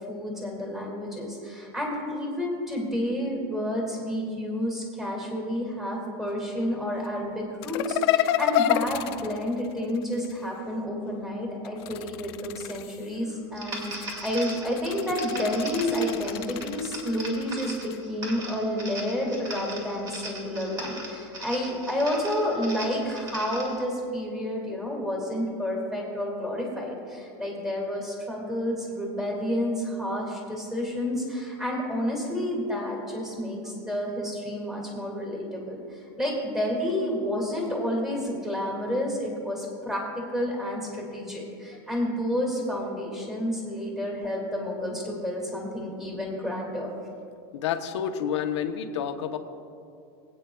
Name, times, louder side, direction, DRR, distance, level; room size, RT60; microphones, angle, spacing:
voice 1, 0.1-46.9, equal, ahead, -1 dB, 2.0 m, -30 dB
sound 1, 7.6-10.4 11.6-13.2 13.7-18.0, left 12 dB, 60° left, 0.4 m, -30 dB
sound 2, 13.5-23.8, right 1 dB, 25° right, 2.2 m, -39 dB
voice 2, 47.5-49.4, left 8 dB, 85° left, 7 dB, 0.8 m, -29 dB
22.0 x 8.7 x 2.3 m, 2.4 s
supercardioid pair, 155°, 14 cm